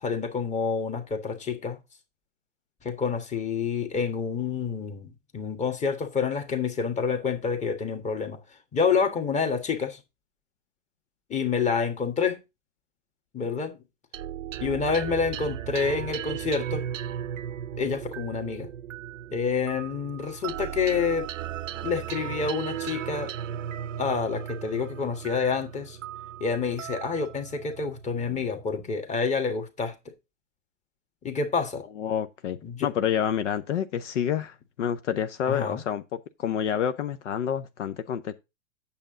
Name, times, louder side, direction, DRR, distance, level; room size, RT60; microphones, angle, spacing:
voice 1, 0.0-1.8 2.8-8.4 8.7-10.0 11.3-12.4 13.3-13.8 14.6-16.8 17.8-18.7 19.3-21.3 21.8-23.3 24.0-26.0 26.4-30.1 31.2-31.8 32.6-32.9 35.5-35.8, left 5 dB, 20° left, 1.5 m, -28 dB
sound 1, 14.1-28.8, right 10 dB, 80° right, 0.7 m, -36 dB
voice 2, 32.0-36.0 36.4-38.3, left 9 dB, 70° left, 0.8 m, -28 dB
8.7 x 7.0 x 3.8 m
hypercardioid pair, 120°, 38 cm